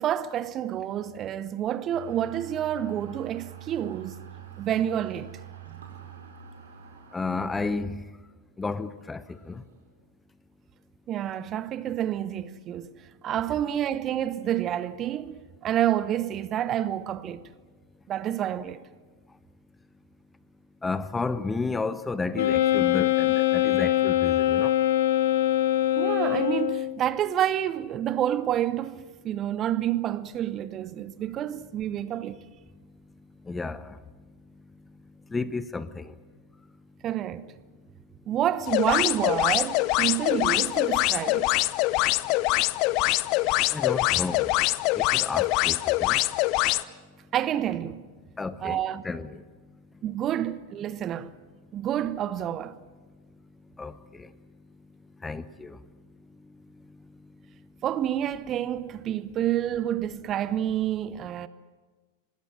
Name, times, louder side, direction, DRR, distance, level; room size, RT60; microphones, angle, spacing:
voice 1, 0.0-4.3 4.6-5.3 11.1-12.9 13.2-17.4 18.1-18.8 26.0-32.4 37.0-37.5 38.3-41.5 47.3-48.0 48.6-49.0 50.0-51.3 51.7-52.7 57.8-61.5, right 11 dB, 30° right, 0.9 m, -28 dB
sound 1, 1.9-10.0, right 10 dB, 65° right, 4.7 m, -46 dB
voice 2, 7.1-8.0 8.6-9.6 20.8-24.7 33.5-34.0 35.3-36.1 43.7-44.5 44.9-46.2 48.4-48.8 49.0-49.4 53.8-54.3 55.2-55.8, left 3 dB, 10° left, 0.9 m, -32 dB
Wind instrument woodwind instrument, 22.3-27.0, left 13 dB, 60° left, 1.0 m, -23 dB
sound 2, 38.7-46.8, left 19 dB, 40° left, 0.6 m, -24 dB
25.5 x 19.5 x 7.6 m
figure-of-eight pair, 90°, 0 cm